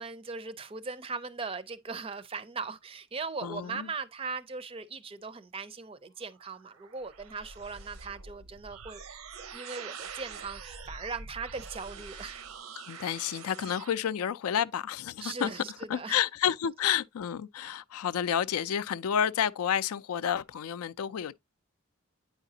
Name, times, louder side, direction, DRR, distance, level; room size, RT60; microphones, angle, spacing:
voice 1, 0.0-9.2 9.5-12.4 15.2-16.2, right 4 dB, 25° right, 0.4 m, -39 dB
voice 2, 3.4-3.9 12.9-15.6 15.9-21.3, left 9 dB, 85° left, 0.4 m, -30 dB
sound 1, 6.3-14.0, right 5 dB, 80° right, 0.7 m, -45 dB
9.0 x 4.9 x 2.7 m
head